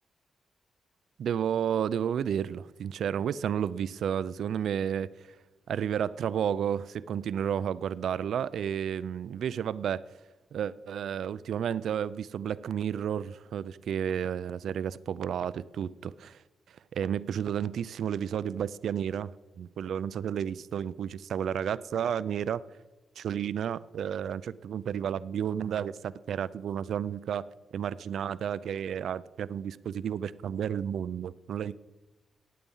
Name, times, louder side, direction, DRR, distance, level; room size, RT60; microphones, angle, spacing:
voice 1, 1.2-5.3 5.7-10.0 10.5-16.4 16.9-19.3 19.6-22.6 23.2-27.5 27.7-31.7, right 8 dB, 75° right, 0.4 m, -32 dB
16.0 x 9.8 x 5.5 m
cardioid pair, 115°, 0 cm